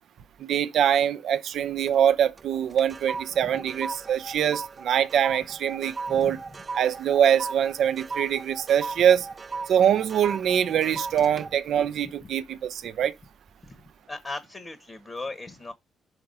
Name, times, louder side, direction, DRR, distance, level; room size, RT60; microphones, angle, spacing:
voice 1, 0.4-6.4 6.7-9.3 9.7-13.1, right 9 dB, 70° right, 0.7 m, -23 dB
sound 1, 1.5-2.1 2.4-12.9 13.4-13.7, right 4 dB, 30° right, 0.5 m, -38 dB
voice 2, 14.1-15.7, left 2 dB, 30° left, 1.2 m, -38 dB
5.8 x 5.7 x 5.4 m
cardioid pair, 90°, 0 cm